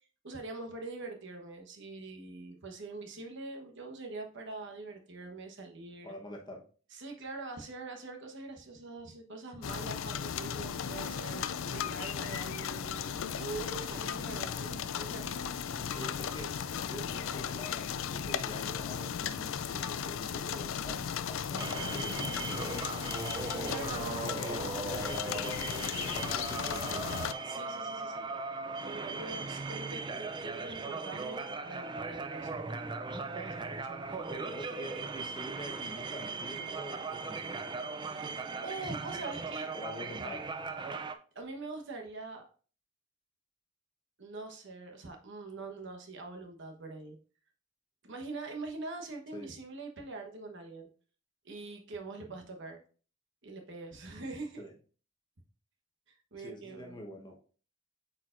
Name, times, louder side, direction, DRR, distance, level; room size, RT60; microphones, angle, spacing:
voice 1, 0.0-6.1 6.9-15.4 23.6-25.0 27.4-28.3 28.8-34.4 38.1-39.7 41.3-42.4 44.2-47.2 48.0-50.9 51.4-52.8 53.4-54.6 56.1-57.0, right 3 dB, 55° right, 3 dB, 1.1 m, -44 dB
voice 2, 6.0-6.6 15.7-22.8 24.2-27.1 30.1-30.2 34.3-37.8 39.7-40.4 49.3-49.5 54.6-54.7 56.4-57.3, equal, 20° left, 1 dB, 1.0 m, -45 dB
sound 1, 9.6-27.3, left 8 dB, 60° left, 0.4 m, -36 dB
sound 2, 21.6-41.1, right 4 dB, 20° right, 0.4 m, -38 dB
8.2 x 4.6 x 2.5 m, 0.40 s
head